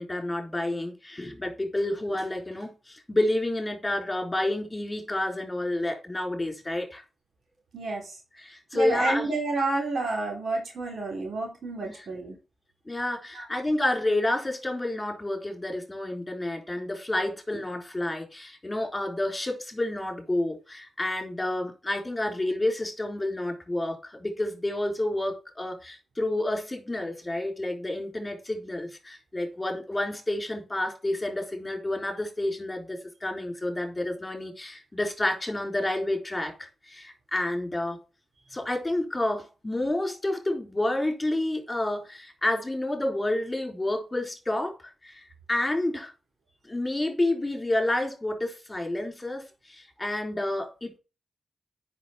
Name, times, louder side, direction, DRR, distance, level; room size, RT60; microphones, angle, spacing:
voice 1, 0.0-7.0 8.4-9.3 11.8-12.0 12.9-38.0 38.5-46.1 46.7-51.0, left 1 dB, 20° left, 4.1 m, -29 dB
voice 2, 7.7-8.2 8.7-12.4 13.3-13.5, right 2 dB, 70° right, 3.8 m, -30 dB
7.9 x 6.3 x 4.5 m
supercardioid pair, 45°, 0 cm